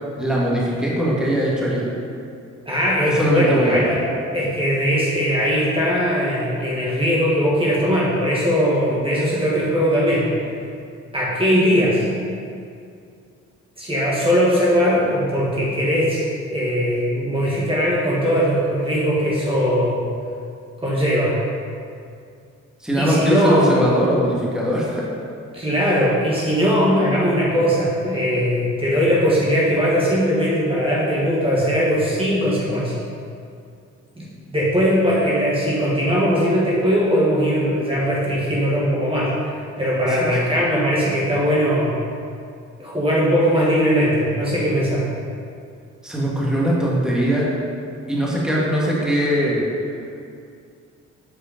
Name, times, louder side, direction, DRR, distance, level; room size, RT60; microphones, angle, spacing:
voice 1, 0.2-1.9 3.1-3.9 22.8-25.0 40.1-40.4 46.0-47.4 48.1-49.6, equal, ahead, -5 dB, 1.8 m, -21 dB
voice 2, 2.6-4.0 4.3-10.3 11.1-12.1 13.8-20.0 20.8-21.4 23.0-23.7 25.5-32.9 34.2-41.9 42.8-45.1, equal, 20° right, -7 dB, 1.7 m, -20 dB
7.7 x 4.9 x 5.2 m, 2.4 s
cardioid pair, 90°, 30 cm